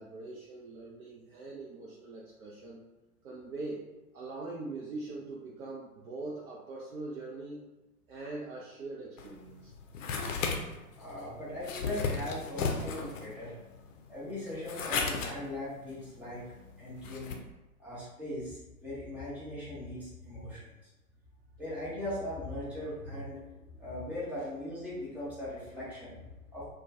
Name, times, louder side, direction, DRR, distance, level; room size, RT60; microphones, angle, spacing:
voice 1, 0.0-2.8 3.2-3.9 4.1-7.7 8.1-9.7, right 2 dB, 70° right, -4 dB, 0.6 m, -42 dB
sound 1, 9.2-17.4, left 4 dB, 60° left, 0.5 m, -36 dB
voice 2, 11.0-13.5 14.1-16.4 16.8-17.4 17.8-20.9 21.6-23.4 23.7-26.7, left 1 dB, 5° right, -9 dB, 0.4 m, -39 dB
2.2 x 2.2 x 2.6 m, 1.1 s
figure-of-eight pair, 100°, 43 cm